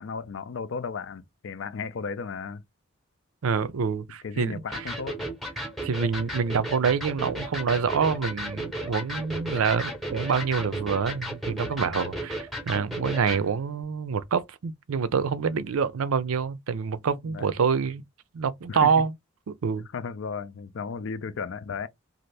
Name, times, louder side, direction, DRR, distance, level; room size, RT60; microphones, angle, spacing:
voice 1, 0.0-2.6 4.2-5.2 17.3-17.5 18.7-18.9 19.9-21.9, left 5 dB, 60° left, 0.4 m, -34 dB
voice 2, 3.4-4.9 5.8-18.0 18.3-19.1 19.5-19.9, right 6 dB, 80° right, 0.5 m, -26 dB
Electric guitar, 4.7-13.5, equal, ahead, 0.8 m, -34 dB
2.7 x 2.5 x 3.2 m
head